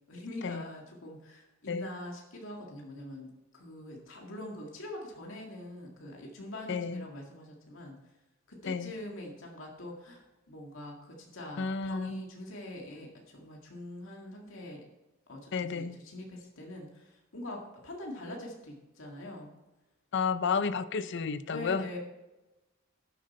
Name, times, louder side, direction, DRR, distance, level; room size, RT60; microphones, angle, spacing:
voice 1, 0.1-8.0 8.5-14.8 15.3-19.6 21.5-22.0, left 1 dB, 75° left, 2.0 m, -44 dB
voice 2, 6.7-7.0 8.7-8.9 11.6-12.2 15.5-16.0 20.1-21.8, left 5 dB, 60° left, 0.5 m, -31 dB
12.0 x 7.8 x 4.3 m
head